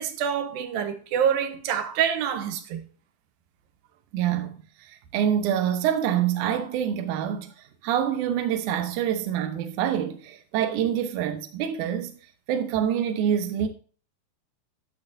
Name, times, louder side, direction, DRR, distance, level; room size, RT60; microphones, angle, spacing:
voice 1, 0.0-2.9, right 8 dB, 90° right, 2.6 m, -26 dB
voice 2, 4.1-4.6 5.1-7.5 7.8-12.2 12.5-13.7, right 9 dB, 70° right, 2.2 m, -26 dB
12.0 x 6.4 x 2.7 m
omnidirectional pair, 4.0 m